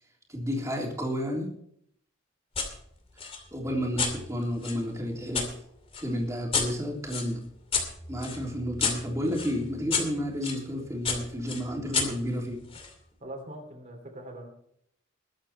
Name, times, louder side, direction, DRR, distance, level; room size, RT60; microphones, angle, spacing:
voice 1, 0.3-1.5 3.5-5.5 6.0-7.4 8.1-12.6, equal, 15° right, -1 dB, 3.5 m, -31 dB
sound 1, 2.5-2.7 3.2-5.5 5.9-10.6 11.0-12.9, left 5 dB, 30° left, 2.6 m, -32 dB
voice 2, 13.2-14.5, right 1 dB, 35° right, 2 dB, 3.1 m, -42 dB
21.0 x 8.6 x 4.4 m, 0.69 s
head